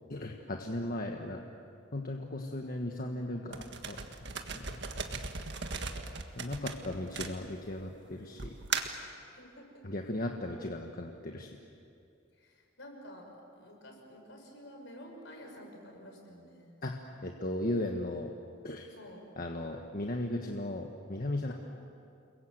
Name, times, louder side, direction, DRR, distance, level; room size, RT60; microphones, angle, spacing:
voice 1, 0.1-1.4 1.9-4.0 4.5-5.2 6.4-8.5 9.8-11.6 16.8-16.9 17.2-18.3 18.6-18.9 19.4-21.5, left 1 dB, 45° left, 2 dB, 1.4 m, -36 dB
voice 2, 0.6-1.4 5.8-6.9 9.3-9.9 12.3-16.8 18.9-19.3, equal, 65° left, 2 dB, 5.9 m, -52 dB
sound 1, 3.5-7.8 8.4-9.1, right 5 dB, 60° right, 1.7 m, -38 dB
29.5 x 22.0 x 7.9 m, 2.6 s
head